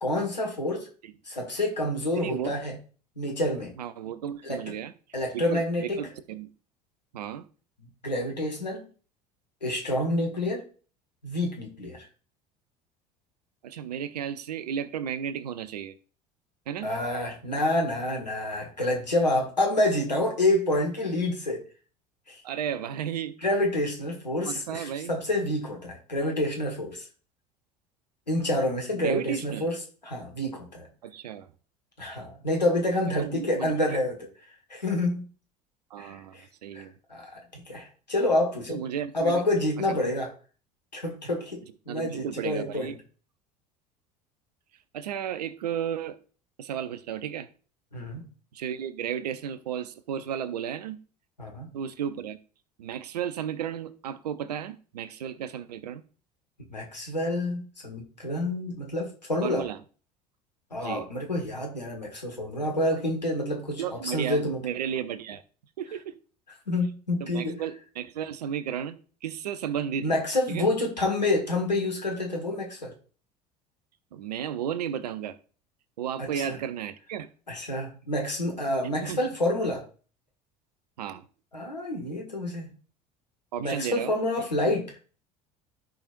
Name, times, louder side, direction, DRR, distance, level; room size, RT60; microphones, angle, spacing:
voice 1, 0.0-0.9 1.3-2.8 3.2-3.7 4.4-4.6 5.1-6.0 8.0-8.8 9.6-10.6 11.2-12.1 16.8-21.6 22.3-22.4 23.4-27.1 28.3-30.9 32.0-34.2 34.7-35.3 36.0-36.4 36.7-38.8 39.1-40.3 40.9-43.0 47.9-48.3 51.4-51.7 56.7-59.6 60.7-64.6 66.7-67.5 70.0-72.9 76.2-76.6 77.5-79.8 81.5-82.7 83.6-85.0, left 1 dB, 85° left, 1.6 m, -28 dB
voice 2, 2.1-2.5 3.8-4.9 5.3-6.5 7.1-7.5 13.6-15.9 16.7-16.9 22.4-23.3 24.5-25.1 28.9-29.7 31.0-31.5 33.1-34.0 35.9-36.9 38.7-39.4 39.9-40.1 41.9-43.0 44.9-46.2 46.6-47.5 48.5-51.0 51.7-52.4 52.8-56.0 59.4-59.8 60.8-61.1 63.8-65.4 65.8-66.2 67.2-70.2 70.5-70.7 74.1-75.4 76.0-77.3 79.0-79.2 81.0-81.3 83.5-84.2, right 9 dB, 70° right, 0.7 m, -34 dB
14.5 x 5.2 x 2.6 m
figure-of-eight pair, 65°, 21 cm